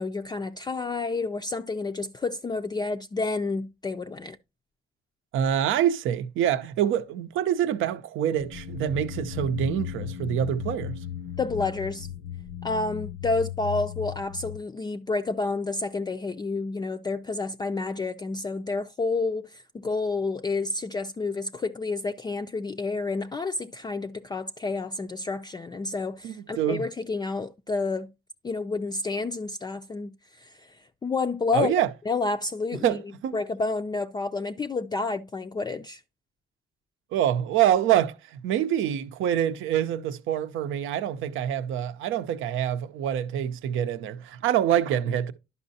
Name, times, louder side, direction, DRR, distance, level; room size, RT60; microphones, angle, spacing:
voice 1, 0.0-4.4 11.4-12.1 12.6-28.1 28.4-31.7 32.1-33.0 33.3-36.0, left 3 dB, 20° left, 0.4 m, -30 dB
voice 2, 5.3-11.0 26.2-26.8 31.5-31.9 32.8-33.4 37.1-45.3, right 10 dB, 85° right, 0.6 m, -26 dB
MF Dream, 8.4-14.6, left 10 dB, 75° left, 0.7 m, -36 dB
11.0 x 5.4 x 2.7 m
cardioid pair, 90°, 20 cm